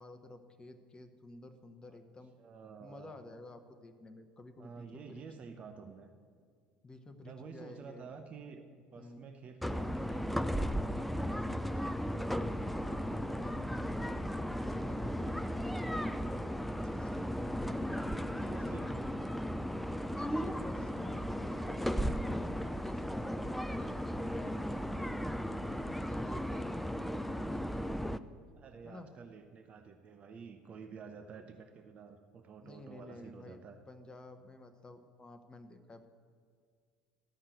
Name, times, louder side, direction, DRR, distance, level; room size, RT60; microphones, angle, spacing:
voice 1, 0.0-2.3 2.8-5.3 6.8-8.1 9.0-9.3 12.6-16.5 16.8-18.8 20.1-22.4 22.8-25.1 25.7-28.1 28.8-29.1 32.6-33.6 33.9-36.1, left 2 dB, 20° left, 7 dB, 1.0 m, -51 dB
voice 2, 2.4-3.1 4.6-6.1 7.2-12.2 18.4-19.0 28.6-33.8, right 5 dB, 35° right, 6 dB, 0.7 m, -50 dB
sound 1, 9.6-28.2, equal, ahead, 0.4 m, -36 dB
13.5 x 5.7 x 7.9 m, 2.1 s
figure-of-eight pair, 65°, 4 cm